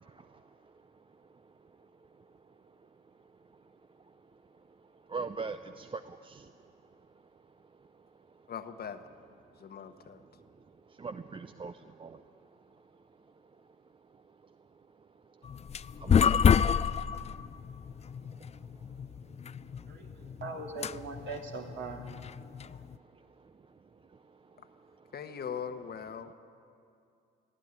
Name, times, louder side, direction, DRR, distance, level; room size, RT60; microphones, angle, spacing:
voice 1, 0.0-0.5 1.1-1.2 2.2-2.3 3.5-3.6 5.1-6.5 10.4-10.5 10.9-12.2 15.7-16.8 18.4-18.5 19.3-19.6 20.0-20.3 23.1-23.5 24.1-24.6, right 4 dB, 25° right, 10 dB, 0.6 m, -43 dB
voice 2, 8.5-9.0 9.6-10.2 22.6-22.8 25.1-26.3, left 7 dB, 50° left, 8 dB, 1.2 m, -40 dB
sound 1, 15.4-23.0, left 7 dB, 35° left, 0.4 m, -29 dB
voice 3, 19.9-22.0, right 3 dB, 65° right, 1 dB, 3.0 m, -41 dB
21.0 x 13.0 x 9.8 m, 2.5 s
cardioid pair, 80°, 20 cm